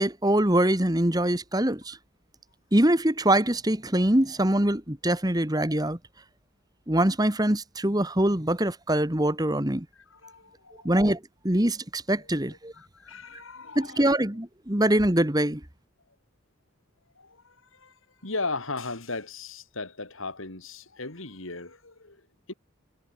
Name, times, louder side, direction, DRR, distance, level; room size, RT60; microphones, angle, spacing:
voice 1, 0.0-2.0 2.7-6.0 6.9-9.9 10.9-12.7 13.8-15.6, right 1 dB, 20° right, 1.7 m, -23 dB
voice 2, 9.9-10.9 12.2-14.2 17.2-22.5, left 3 dB, 75° left, 3.9 m, -38 dB
head